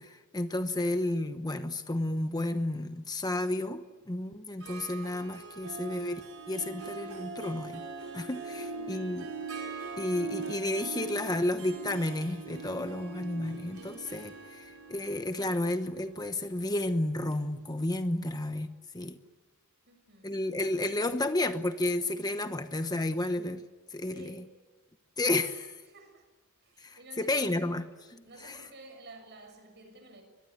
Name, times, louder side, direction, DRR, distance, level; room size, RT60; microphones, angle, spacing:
voice 1, 0.0-7.8 8.1-9.3 10.0-19.2 20.2-23.6 23.9-24.4 25.2-25.8 26.8-28.6, left 1 dB, 20° left, 1.0 m, -32 dB
Harp, 4.6-18.2, right 4 dB, 80° right, 5.0 m, -42 dB
voice 2, 8.5-9.0 19.8-20.6 24.1-24.5 25.9-26.3 26.6-27.6 28.2-30.2, right 2 dB, 50° right, 6.7 m, -52 dB
23.5 x 22.5 x 9.5 m
head